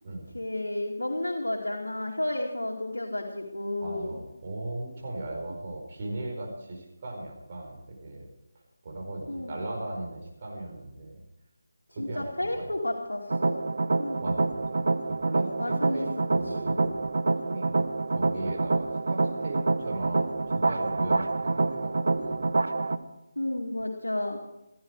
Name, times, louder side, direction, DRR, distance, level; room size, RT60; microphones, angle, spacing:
voice 1, 0.3-4.2 9.3-9.6 12.0-13.6 14.0-14.2 15.6-16.2 23.4-24.4, left 1 dB, 85° left, -2 dB, 2.6 m, -32 dB
voice 2, 3.8-8.2 8.8-11.2 11.9-12.7 14.2-14.8 15.1-17.1 17.4-22.5, right 2 dB, 40° right, 0 dB, 4.9 m, -38 dB
sound 1, 13.3-23.0, right 3 dB, 65° right, 1.0 m, -27 dB
17.0 x 15.0 x 4.8 m, 0.90 s
figure-of-eight pair, 160°, 0 cm